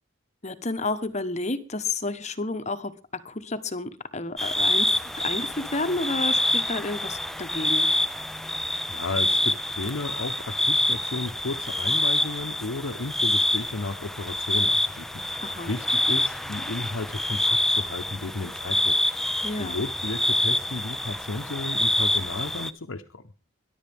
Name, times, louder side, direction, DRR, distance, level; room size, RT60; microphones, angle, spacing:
voice 1, 0.4-2.9 3.2-7.9 15.4-15.7 19.4-19.8, left 2 dB, 35° left, 11 dB, 1.2 m, -31 dB
sound 1, 4.4-22.7, left 1 dB, ahead, 0.7 m, -26 dB
voice 2, 8.4-19.3 19.6-23.2, left 2 dB, 80° left, 3 dB, 1.0 m, -34 dB
22.0 x 11.5 x 3.6 m, 0.32 s
head